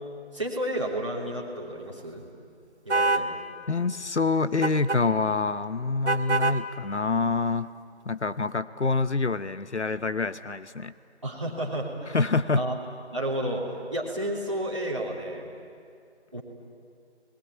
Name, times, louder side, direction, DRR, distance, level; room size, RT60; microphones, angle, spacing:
voice 1, 0.3-2.2 2.8-3.3 11.2-12.2 12.5-12.7 13.1-15.4 16.3-16.4, right 1 dB, 25° right, -4 dB, 3.3 m, -31 dB
sound 1, 2.9-3.3 4.6-5.0 6.1-6.6, right 3 dB, 75° right, 1.8 m, -24 dB
voice 2, 3.7-7.7 8.1-10.9 12.1-12.6, left 4 dB, 80° left, 13 dB, 1.0 m, -26 dB
28.5 x 20.5 x 9.5 m, 2.3 s
figure-of-eight pair, 175°, 34 cm